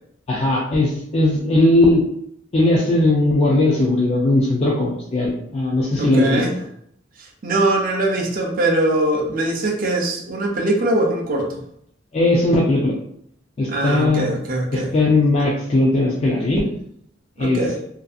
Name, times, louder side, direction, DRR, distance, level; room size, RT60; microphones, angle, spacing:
voice 1, 0.3-2.0 2.5-6.4 12.1-13.0 13.6-14.3 14.7-16.7 17.4-17.6, left 2 dB, 35° left, -4 dB, 0.4 m, -18 dB
voice 2, 6.0-6.5 7.4-11.6 13.7-14.9 17.4-17.8, right 1 dB, 50° right, 1 dB, 0.5 m, -21 dB
2.5 x 2.4 x 2.4 m, 0.71 s
head